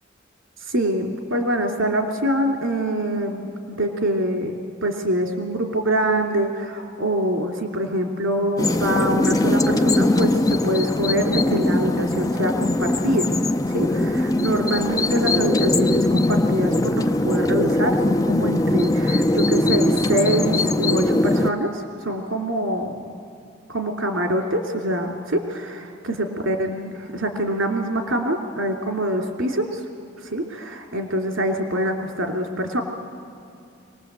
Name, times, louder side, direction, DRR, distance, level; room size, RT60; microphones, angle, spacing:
voice 1, 0.7-13.3 13.7-22.9 23.7-29.8 30.2-32.8, right 1 dB, 80° right, 3 dB, 2.8 m, -25 dB
sound 1, 8.6-21.5, left 1 dB, 20° left, 0.5 m, -21 dB
24.0 x 19.0 x 8.2 m, 2.6 s
head